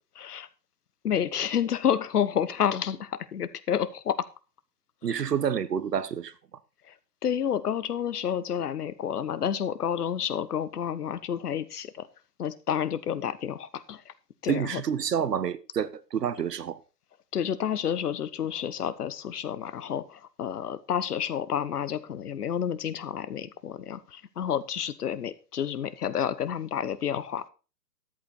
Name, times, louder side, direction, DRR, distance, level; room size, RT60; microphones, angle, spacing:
voice 1, 0.1-0.5 1.0-4.2 5.0-5.2 6.9-7.0 7.2-12.1 12.4-14.1 14.4-14.8 17.3-27.5, left 8 dB, 65° left, 1.2 m, -30 dB
voice 2, 5.0-6.3 14.5-16.8, right 8 dB, 70° right, 1.2 m, -28 dB
13.0 x 7.9 x 4.1 m
figure-of-eight pair, 120°, 50 cm